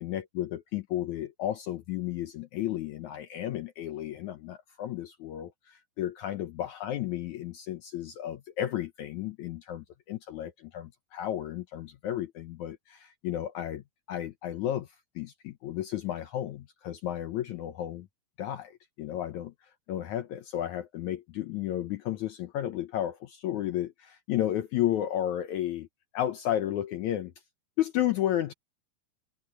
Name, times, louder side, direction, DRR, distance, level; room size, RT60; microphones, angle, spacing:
voice 1, 0.0-18.1 18.4-25.9 26.1-27.3 27.8-28.5, left 12 dB, 70° left, 1.9 m, -33 dB
open air
omnidirectional pair, 4.3 m